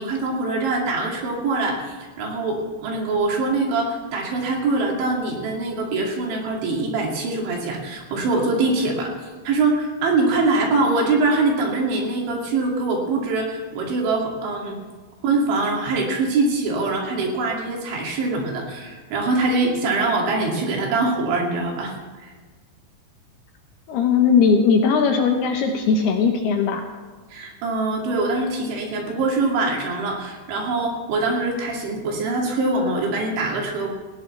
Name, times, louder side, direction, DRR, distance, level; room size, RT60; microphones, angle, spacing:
voice 1, 0.0-14.8 15.2-21.9 22.2-22.3 27.3-33.9, right 3 dB, 75° right, -1 dB, 4.8 m, -23 dB
voice 2, 23.9-26.8, left 5 dB, 75° left, 3 dB, 2.6 m, -18 dB
18.0 x 17.0 x 3.3 m, 1.4 s
omnidirectional pair, 5.5 m